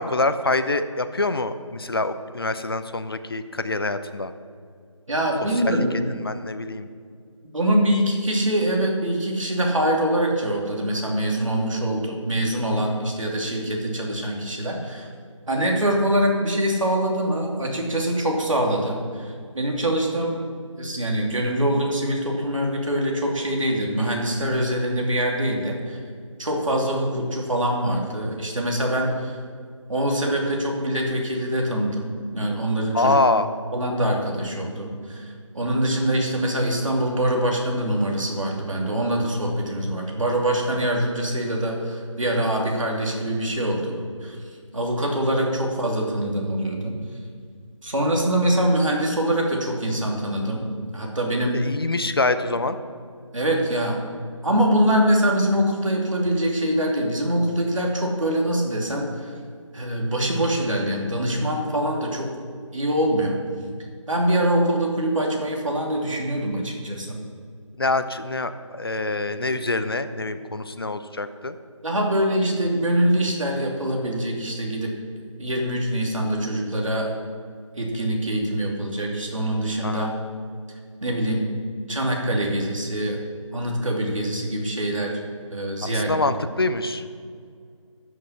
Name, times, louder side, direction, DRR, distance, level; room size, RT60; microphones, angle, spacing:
voice 1, 0.0-4.3 5.7-6.9 32.9-33.5 51.5-52.8 67.8-68.5 68.8-71.6 79.8-80.1 85.8-87.0, left 2 dB, 45° left, 11 dB, 0.6 m, -25 dB
voice 2, 5.1-6.0 7.5-15.1 15.5-20.4 20.8-26.0 26.4-29.4 29.9-33.2 33.7-43.9 44.2-44.4 44.7-46.9 47.8-50.6 50.9-51.6 53.3-54.0 54.4-59.3 59.7-62.3 62.7-63.4 64.1-67.2 71.8-74.9 75.4-77.1 77.8-80.1 81.0-81.5 81.9-83.2 83.5-85.2 85.5-86.2, right 1 dB, 75° right, 0 dB, 2.7 m, -24 dB
13.5 x 6.5 x 5.8 m, 2.1 s
figure-of-eight pair, 170°, 17 cm